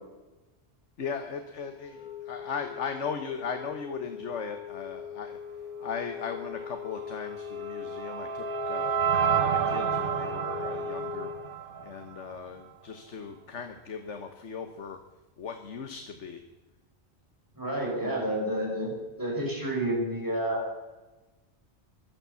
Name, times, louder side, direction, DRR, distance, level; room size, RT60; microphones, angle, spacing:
voice 1, 1.0-5.4 5.8-8.9 9.4-11.3 11.8-15.0 15.4-16.4, left 6 dB, 80° left, 7 dB, 1.5 m, -38 dB
Wind instrument woodwind instrument, 1.8-11.6, left 7 dB, 40° left, 1.3 m, -40 dB
sound 1, 7.2-12.3, right 8 dB, 50° right, 1.1 m, -30 dB
voice 2, 17.5-18.9 19.2-20.6, right 1 dB, 15° right, -3 dB, 6.1 m, -29 dB
15.5 x 12.0 x 7.0 m, 1.1 s
omnidirectional pair, 1.2 m